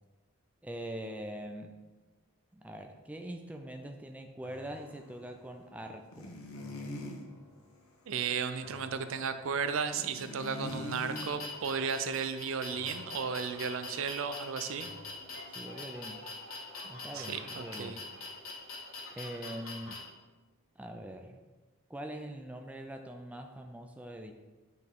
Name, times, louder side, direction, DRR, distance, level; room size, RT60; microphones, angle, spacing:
voice 1, 0.6-1.8 2.5-6.3 15.6-16.3 16.8-18.0 19.1-20.1 20.8-21.4 21.9-24.3, right 1 dB, 5° right, 4 dB, 0.4 m, -43 dB
sound 1, 4.4-19.7 20.1-20.2, left 1 dB, 45° left, 1.9 m, -58 dB
sound 2, 6.1-7.2 9.9-11.3, left 1 dB, 90° left, 1.0 m, -41 dB
voice 2, 8.1-14.9 17.1-18.0, right 6 dB, 65° right, 10 dB, 0.4 m, -34 dB
sound 3, 9.9-20.0, left 3 dB, 75° left, 1.5 m, -44 dB
9.0 x 4.0 x 3.7 m, 1.2 s
head